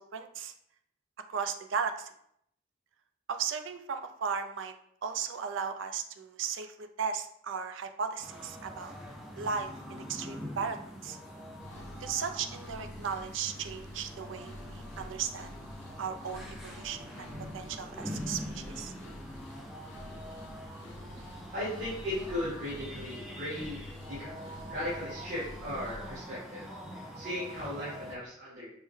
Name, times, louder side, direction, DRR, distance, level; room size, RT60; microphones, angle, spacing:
voice 1, 0.1-0.5 1.3-2.1 3.3-4.7 5.0-8.9 9.4-11.2 12.0-15.5 16.0-17.3 17.5-18.9, right 6 dB, 75° right, 8 dB, 0.4 m, -36 dB
sound 1, 8.2-28.2, equal, ahead, 0.3 m, -44 dB
sound 2, 11.6-26.2, left 1 dB, 70° left, 0.6 m, -49 dB
voice 2, 21.0-28.7, left 1 dB, 40° right, -11 dB, 1.5 m, -37 dB
5.3 x 2.1 x 3.1 m, 0.70 s
head